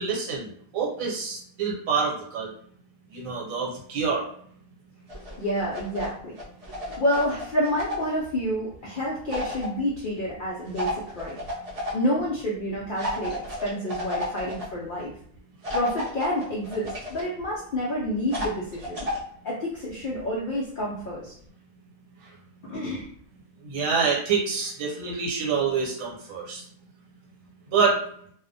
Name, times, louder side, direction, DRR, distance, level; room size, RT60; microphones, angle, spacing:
voice 1, 0.0-2.5 3.1-4.3 23.6-26.6 27.7-28.0, right 5 dB, 75° right, -3 dB, 1.2 m, -26 dB
sound 1, 5.1-6.1 6.4-8.1 9.3-9.7 10.7-11.9 13.0-14.6 15.6-17.2 18.3-19.2, left 1 dB, 40° right, 0.5 m, -32 dB
voice 2, 5.4-6.3 7.0-11.4 11.9-15.1 15.7-19.1 19.4-21.3 22.6-23.1, equal, 80° left, -4 dB, 0.4 m, -29 dB
2.4 x 2.0 x 2.6 m, 0.63 s
omnidirectional pair, 1.4 m